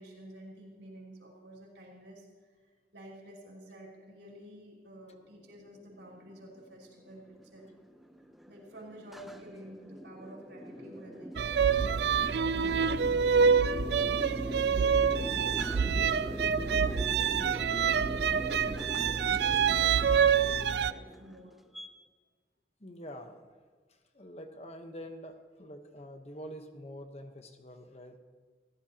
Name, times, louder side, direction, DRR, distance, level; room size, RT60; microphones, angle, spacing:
voice 1, 0.0-7.7 8.5-17.5 18.0-21.6, equal, 85° right, -3 dB, 5.5 m, -51 dB
sound 1, 5.5-21.9, equal, ahead, 0.7 m, -42 dB
sound 2, 11.4-20.9, right 6 dB, 65° right, 0.4 m, -26 dB
voice 2, 22.8-23.5 23.9-28.2, equal, 35° left, 5 dB, 1.2 m, -46 dB
29.5 x 15.0 x 3.0 m, 1.5 s
head